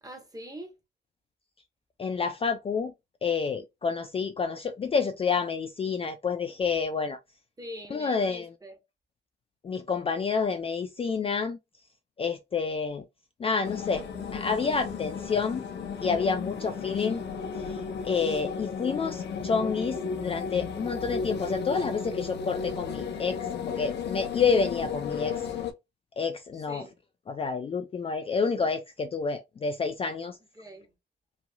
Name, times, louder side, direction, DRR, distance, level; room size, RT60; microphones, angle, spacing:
voice 1, 0.0-0.7 7.6-8.8 26.7-26.9 30.5-30.9, equal, 20° right, 1.0 m, -43 dB
voice 2, 2.0-2.9 3.2-7.2 7.9-8.5 9.6-11.6 12.2-13.0 13.4-14.0 14.3-15.6 16.0-17.2 17.7-17.8 18.0-25.4 26.2-26.8 27.3-30.4, left 5 dB, 30° left, 0.4 m, -29 dB
sound 1, 13.6-25.7, left 6 dB, 60° left, 0.7 m, -34 dB
3.0 x 2.6 x 2.2 m
cardioid pair, 90°, 20 cm